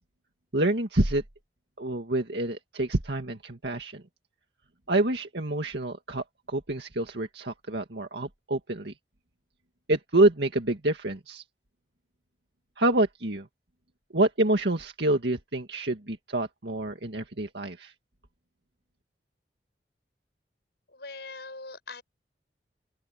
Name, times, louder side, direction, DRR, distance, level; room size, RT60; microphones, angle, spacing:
voice 1, 0.5-1.2 1.8-4.0 4.9-8.9 9.9-11.4 12.8-13.5 14.1-17.9, right 1 dB, 75° right, 2.0 m, -27 dB
voice 2, 20.9-22.0, left 3 dB, 70° left, 6.5 m, -41 dB
open air
head